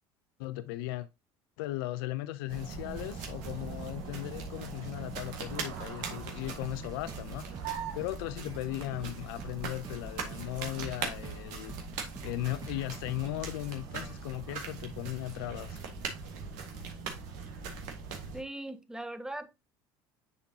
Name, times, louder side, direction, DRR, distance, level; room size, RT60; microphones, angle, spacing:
voice 1, 0.4-1.1 1.6-11.8 12.2-15.8, left 16 dB, 80° left, 0.4 m, -37 dB
sound 1, 2.5-18.4, right 5 dB, 75° right, 1.7 m, -40 dB
sound 2, 6.2-14.5, right 4 dB, 30° right, 1.7 m, -47 dB
voice 2, 18.3-19.5, right 1 dB, 5° right, 0.9 m, -40 dB
9.8 x 3.7 x 2.8 m
hypercardioid pair, 75°, 12 cm